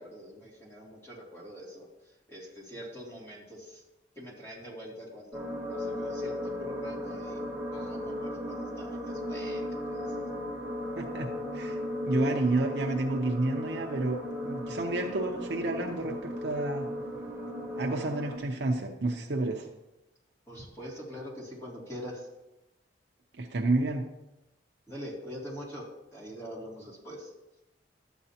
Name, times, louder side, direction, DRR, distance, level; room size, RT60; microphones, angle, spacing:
voice 1, 0.0-1.9 2.3-3.8 4.2-7.5 7.7-10.2 20.5-22.3 24.9-25.8 26.1-27.3, equal, 15° left, -6 dB, 2.7 m, -44 dB
sound 1, 5.3-18.4, left 1 dB, 15° right, 1.5 m, -36 dB
voice 2, 11.0-11.3 11.5-11.8 12.1-16.9 17.8-19.7 23.4-24.0, right 2 dB, 65° right, 1 dB, 0.8 m, -30 dB
12.0 x 8.2 x 2.9 m, 0.95 s
head